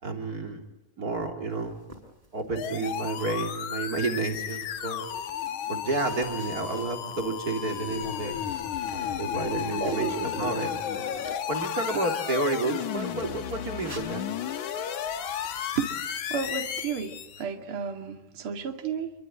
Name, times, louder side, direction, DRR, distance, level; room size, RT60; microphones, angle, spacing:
voice 1, 0.0-0.6 1.0-1.8 2.3-5.1 5.7-8.4 8.9-11.1 11.5-14.3, right 3 dB, 30° right, 3 dB, 3.5 m, -31 dB
sound 1, 1.5-12.1 13.1-17.5, right 1 dB, 10° right, 5.9 m, -53 dB
sound 2, 2.6-17.4, left 9 dB, 70° left, 2.8 m, -33 dB
voice 2, 9.8-10.5 15.8-15.9 16.3-19.1, right 6 dB, 45° right, 4 dB, 3.0 m, -32 dB
27.5 x 24.0 x 9.0 m, 0.88 s
omnidirectional pair, 3.6 m